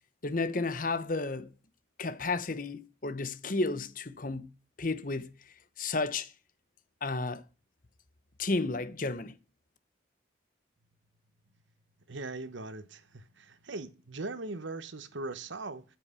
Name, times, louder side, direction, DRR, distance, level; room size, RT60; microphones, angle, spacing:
voice 1, 0.2-1.5 2.0-4.5 4.8-5.3 5.8-6.3 7.0-7.4 8.4-9.4, left 3 dB, 45° left, 0.9 m, -32 dB
voice 2, 12.1-15.8, right 3 dB, 85° right, 1.1 m, -40 dB
8.8 x 7.9 x 8.1 m
head